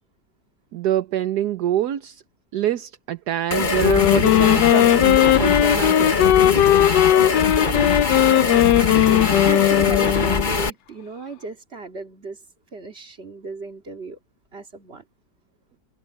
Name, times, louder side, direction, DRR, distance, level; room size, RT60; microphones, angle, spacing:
voice 1, 0.7-2.2 2.5-6.8, right 11 dB, 65° right, 1.3 m, -26 dB
sound 1, 3.5-10.7, left 4 dB, 30° left, 1.2 m, -22 dB
Wind instrument woodwind instrument, 3.8-10.6, left 12 dB, 70° left, 1.3 m, -17 dB
voice 2, 8.0-12.4 12.7-14.2 14.5-15.0, right 4 dB, 35° right, 2.7 m, -36 dB
omnidirectional pair, 2.0 m